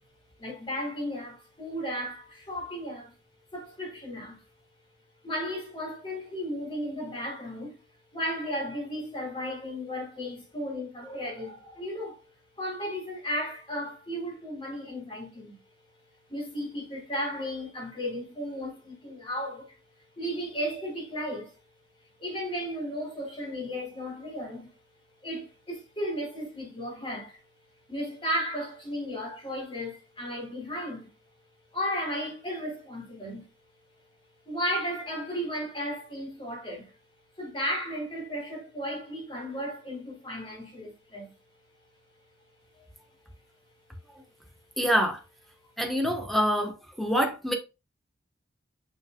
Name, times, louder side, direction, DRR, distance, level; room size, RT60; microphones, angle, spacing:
voice 1, 0.4-3.1 3.5-4.4 5.2-7.8 8.1-12.3 12.6-15.6 16.3-19.8 20.2-21.5 22.2-24.8 25.2-27.4 27.9-31.1 31.7-33.5 34.5-36.9 37.4-41.3, equal, 30° left, 3.9 m, -34 dB
voice 2, 44.8-45.2 45.8-47.5, equal, ahead, 1.2 m, -26 dB
6.9 x 6.2 x 2.3 m
head